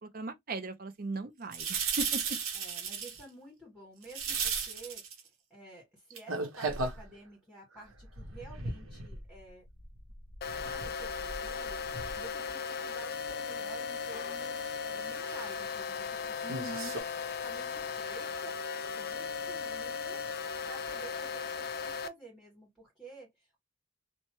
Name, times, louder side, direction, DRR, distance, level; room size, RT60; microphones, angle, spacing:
voice 1, 0.0-2.2 16.4-16.9, right 2 dB, 45° right, 0.5 m, -38 dB
sound 1, 1.5-3.2 4.0-5.2 6.1-7.1 7.8-9.5 9.8-12.3 12.7-12.8 14.4-14.6 15.0-15.5 16.5-17.0, right 5 dB, 75° right, 0.9 m, -36 dB
voice 2, 2.5-5.0 5.5-9.7 10.6-17.0 17.4-20.2 20.6-23.6, right 2 dB, ahead, 1.6 m, -51 dB
sound 2, 10.4-22.1, left 6 dB, 50° left, 0.3 m, -37 dB
2.9 x 2.1 x 3.0 m
head